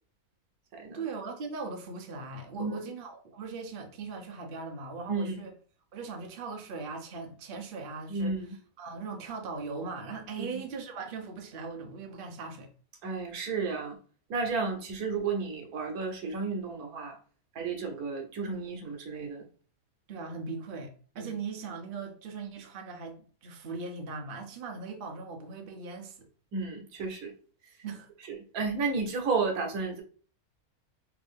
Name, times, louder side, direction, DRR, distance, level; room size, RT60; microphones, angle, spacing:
voice 1, 0.9-5.5 5.9-8.3 8.8-12.7 20.1-26.3 27.8-28.1, right 4 dB, 50° right, 0.7 m, -39 dB
voice 2, 2.6-2.9 5.1-5.4 8.1-8.5 10.4-10.5 13.0-14.0 14.3-17.2 17.5-19.4 21.2-21.3 26.5-27.3 28.3-30.0, right 4 dB, 85° right, 1.3 m, -32 dB
3.4 x 2.6 x 3.5 m
omnidirectional pair, 1.5 m